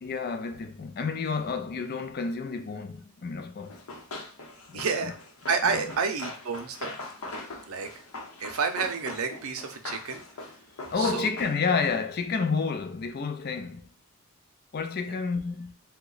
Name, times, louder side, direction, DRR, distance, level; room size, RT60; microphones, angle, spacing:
voice 1, 0.0-3.8 4.7-5.1 5.6-5.8 10.9-13.9 14.7-15.7, left 5 dB, 45° left, 0.4 m, -30 dB
Run, 3.7-11.9, left 2 dB, 85° left, 0.8 m, -41 dB
voice 2, 4.7-5.1 5.5-6.9 7.7-7.9 8.4-10.2 11.0-11.3, right 5 dB, 75° right, 0.5 m, -29 dB
2.9 x 2.2 x 3.9 m
head